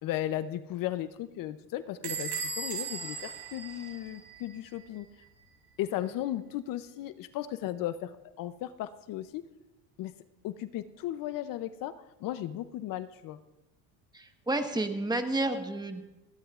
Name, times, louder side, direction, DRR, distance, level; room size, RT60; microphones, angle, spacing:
voice 1, 0.0-5.1 5.8-9.4 10.0-10.1 10.4-11.9 12.2-13.4, left 13 dB, 55° left, 12 dB, 0.7 m, -35 dB
Bell / Squeak, 2.0-4.5, right 5 dB, 75° right, 4.2 m, -37 dB
voice 2, 14.1-16.0, right 2 dB, 10° right, 6 dB, 1.2 m, -30 dB
30.0 x 11.0 x 2.5 m, 0.99 s
cardioid pair, 115°, 39 cm